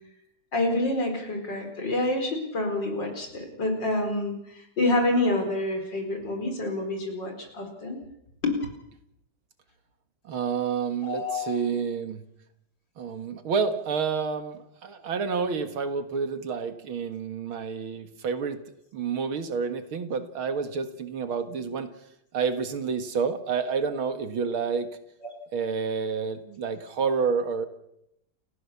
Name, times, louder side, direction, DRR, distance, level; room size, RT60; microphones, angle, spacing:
voice 1, 0.5-8.0 8.4-8.5 11.0-11.6, left 2 dB, 55° left, 4 dB, 5.3 m, -27 dB
voice 2, 10.2-12.2 13.0-18.6 18.9-21.9 22.3-24.9 25.5-27.7, right 5 dB, 70° right, 9 dB, 2.5 m, -29 dB
30.0 x 15.5 x 7.1 m, 0.79 s
omnidirectional pair, 2.4 m